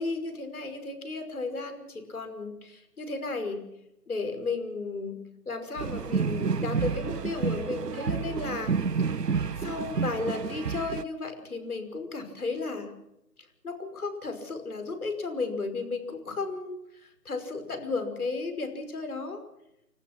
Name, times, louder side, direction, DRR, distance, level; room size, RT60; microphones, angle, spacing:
voice 1, 0.0-3.6 4.1-5.2 5.5-8.7 9.5-12.9 13.6-19.4, left 3 dB, 65° left, 7 dB, 5.6 m, -34 dB
sound 1, 5.8-11.0, right 5 dB, 75° right, 0.9 m, -29 dB
30.0 x 15.0 x 6.0 m, 0.84 s
figure-of-eight pair, 155°, 48 cm